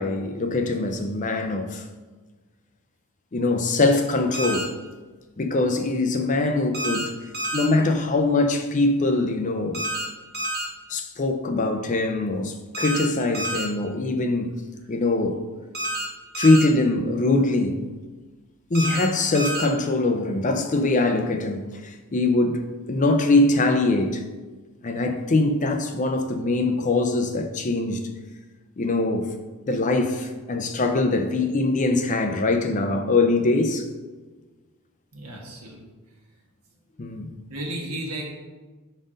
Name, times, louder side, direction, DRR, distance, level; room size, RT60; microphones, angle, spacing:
voice 1, 0.0-1.8 3.3-4.7 5.4-7.1 7.5-9.8 10.9-14.6 14.9-15.4 16.4-17.8 18.7-24.2 24.8-28.0 28.8-29.3 29.7-33.9 37.0-37.3, left 2 dB, 35° left, 0.5 m, -22 dB
sound 1, 4.3-4.6 6.7-7.0 7.3-7.7 9.7-10.0 10.3-10.7 12.7-13.1 13.3-13.7 15.7-16.1 16.3-16.7 18.7-19.1 19.3-19.7, right 1 dB, 45° right, 1.5 m, -28 dB
voice 2, 35.1-35.9 37.5-38.3, right 1 dB, 80° right, 1.3 m, -33 dB
5.2 x 4.1 x 5.1 m
head